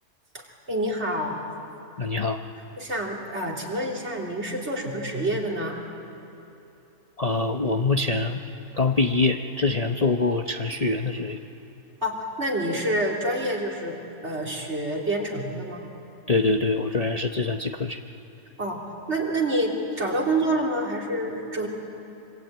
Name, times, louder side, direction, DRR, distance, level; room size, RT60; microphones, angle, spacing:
voice 1, 0.3-1.4 2.8-5.8 12.0-14.0 14.2-15.8 18.6-21.7, right 1 dB, 50° right, -1 dB, 3.5 m, -27 dB
voice 2, 2.0-2.4 7.2-8.4 8.8-11.4 16.3-18.0, left 3 dB, 35° left, 4 dB, 0.8 m, -24 dB
25.5 x 25.0 x 9.2 m, 3.0 s
omnidirectional pair, 1.5 m